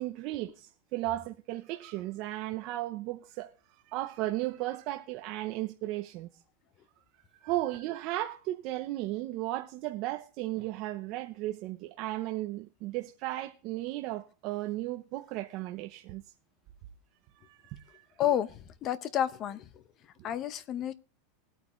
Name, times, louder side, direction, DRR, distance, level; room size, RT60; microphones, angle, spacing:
voice 1, 0.0-3.5 3.9-6.3 7.3-16.2 17.4-18.1, right 16 dB, 40° right, 0.8 m, -35 dB
voice 2, 18.2-19.7 20.2-20.9, left 11 dB, 30° left, 0.8 m, -30 dB
20.5 x 9.1 x 3.1 m
supercardioid pair, 170°, 0 cm